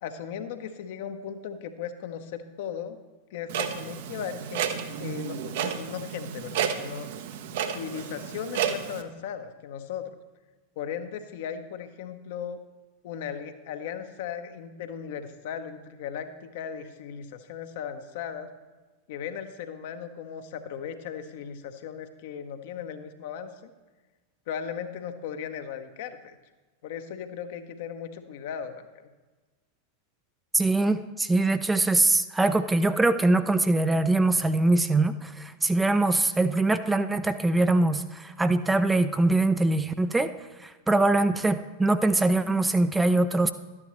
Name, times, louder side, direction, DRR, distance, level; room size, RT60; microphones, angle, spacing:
voice 1, 0.0-3.0 3.3-4.7 5.0-7.1 7.7-10.1 10.8-12.6 13.0-18.5 19.1-23.7 24.5-26.4 26.8-29.1, left 8 dB, 50° left, 8 dB, 0.8 m, -37 dB
Clock, 3.5-9.0, right 8 dB, 55° right, 0.7 m, -32 dB
voice 2, 30.5-40.3 40.6-43.5, right 2 dB, 10° right, 10 dB, 0.4 m, -23 dB
12.5 x 9.8 x 3.1 m, 1.3 s
figure-of-eight pair, 90°, 0 cm